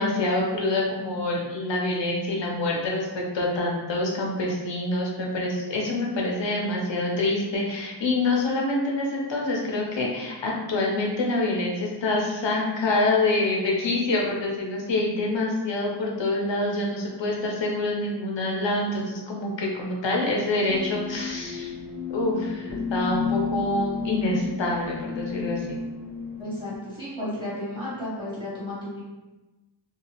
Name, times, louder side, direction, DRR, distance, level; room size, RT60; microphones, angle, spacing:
voice 1, 0.0-21.7 22.1-25.8, left 2 dB, 90° left, -2 dB, 0.8 m, -26 dB
sound 1, 20.7-26.7, left 5 dB, 90° right, 0.8 m, -32 dB
voice 2, 26.4-29.0, left 1 dB, 10° right, -10 dB, 1.3 m, -33 dB
2.8 x 2.4 x 2.8 m, 1.1 s
wide cardioid pair, 125°, 43 cm